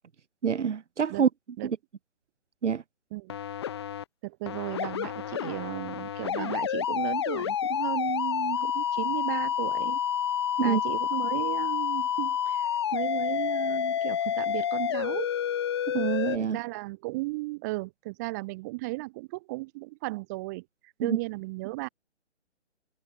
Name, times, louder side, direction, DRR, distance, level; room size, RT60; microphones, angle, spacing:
voice 1, 0.4-1.3 1.6-1.8 2.6-2.8 10.6-10.8 15.9-16.6 21.0-21.2, right 7 dB, 80° right, 1.0 m, -26 dB
sound 1, 3.3-4.0 4.5-16.4, left 9 dB, 25° left, 1.8 m, -29 dB
voice 2, 4.2-10.0 10.6-15.3 16.4-20.6 21.0-21.9, right 23 dB, 15° right, 4.6 m, -35 dB
hypercardioid pair, 175°, 35 cm